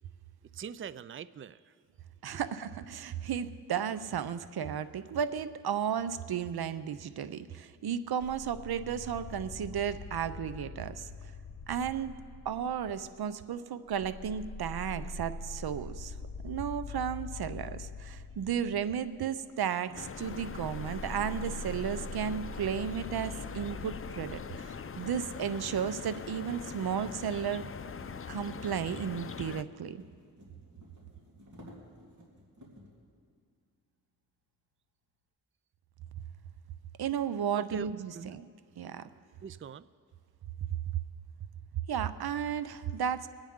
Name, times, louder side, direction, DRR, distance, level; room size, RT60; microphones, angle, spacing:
voice 1, 0.5-1.7 2.3-2.4 37.5-37.9 38.1-38.3 39.4-39.9, right 7 dB, 35° right, 17 dB, 0.4 m, -42 dB
voice 2, 2.2-11.1 11.7-12.1 12.4-16.1 16.4-27.7 28.3-30.0 37.0-38.5 38.8-39.1 41.9-43.3, right 8 dB, 85° right, 13 dB, 0.6 m, -34 dB
sound 1, 8.2-13.4 13.9-25.4, left 3 dB, 55° left, 0.9 m, -44 dB
sound 2, 19.9-29.6, left 6 dB, 35° left, 0.5 m, -42 dB
sound 3, 28.0-33.0, equal, 50° right, 3.3 m, -56 dB
23.0 x 8.9 x 3.6 m, 2.1 s
cardioid pair, 45°, 36 cm